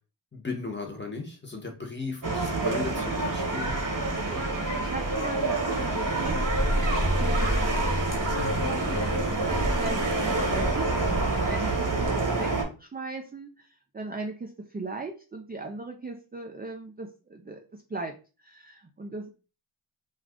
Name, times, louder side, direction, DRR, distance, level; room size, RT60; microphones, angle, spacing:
voice 1, 0.3-3.7, left 3 dB, 20° left, 1 dB, 0.9 m, -36 dB
sound 1, 2.2-12.6, right 2 dB, 40° right, 0.9 m, -27 dB
voice 2, 3.8-6.4 7.1-7.5 9.1-12.5 12.8-19.3, right 3 dB, 20° right, 2 dB, 0.3 m, -38 dB
sound 2, 6.2-12.1, equal, 80° left, 1.0 m, -30 dB
2.4 x 2.3 x 3.5 m, 0.33 s
wide cardioid pair, 55°, 50 cm